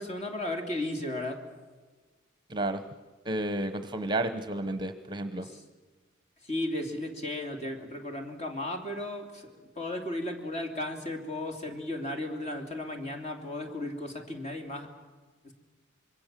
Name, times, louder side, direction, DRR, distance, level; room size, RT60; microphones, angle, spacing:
voice 1, 0.0-1.4 5.4-5.6 6.4-14.9 15.4-15.5, left 1 dB, 35° left, 5 dB, 2.9 m, -35 dB
voice 2, 2.5-2.8 3.2-5.5, right 1 dB, 20° right, 10 dB, 1.0 m, -31 dB
26.0 x 22.5 x 7.6 m, 1.3 s
head